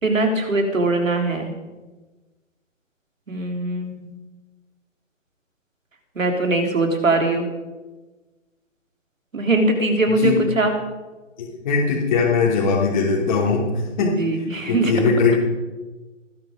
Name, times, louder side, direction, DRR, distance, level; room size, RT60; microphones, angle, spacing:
voice 1, 0.0-1.5 3.3-4.0 6.2-7.5 9.3-10.7 14.0-14.9, right 2 dB, 85° right, 4 dB, 3.8 m, -21 dB
voice 2, 11.4-15.4, left 4 dB, 35° left, -4 dB, 3.3 m, -21 dB
20.0 x 11.0 x 5.2 m, 1.2 s
hypercardioid pair, 150°, 38 cm